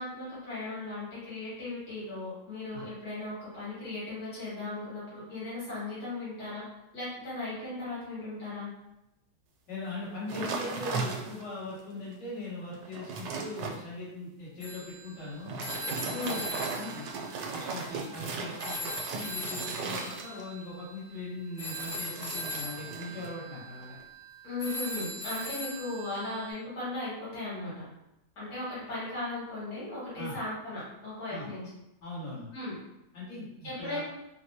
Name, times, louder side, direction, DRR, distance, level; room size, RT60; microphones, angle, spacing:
voice 1, 0.0-6.7 6.9-8.7 16.1-16.4 24.4-27.9 28.4-31.7 32.5-32.8 33.6-34.0, left 2 dB, 75° left, -9 dB, 2.3 m, -37 dB
voice 2, 9.7-15.6 15.9-17.1 17.5-24.0 30.2-30.4 31.3-31.5 32.0-32.5 33.1-34.0, left 2 dB, 90° left, -9 dB, 2.2 m, -40 dB
sound 1, 10.3-11.6 12.1-12.2 12.7-13.8 15.3-20.6 21.6-23.3 23.6-24.0, right 4 dB, 85° right, 1.2 m, -37 dB
Telephone, 14.6-18.2 18.6-26.5, left 1 dB, 20° right, 0.9 m, -40 dB
4.0 x 2.2 x 2.8 m, 0.88 s
omnidirectional pair, 1.8 m